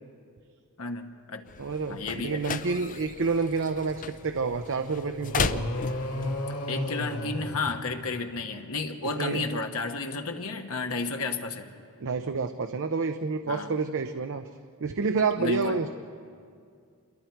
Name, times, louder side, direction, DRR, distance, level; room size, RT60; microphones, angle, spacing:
voice 1, 0.8-1.4 1.9-2.6 6.7-11.7 13.5-13.7 15.4-15.8, left 3 dB, 70° left, 4 dB, 1.2 m, -32 dB
sound 1, 1.5-6.4, left 5 dB, 35° left, 0.5 m, -35 dB
voice 2, 1.6-5.7 9.2-9.4 12.0-14.5 14.8-15.9, right 4 dB, 60° right, 7 dB, 0.7 m, -29 dB
sound 2, 5.2-8.5, left 1 dB, 90° left, 2.1 m, -33 dB
28.0 x 22.5 x 4.6 m, 2.3 s
head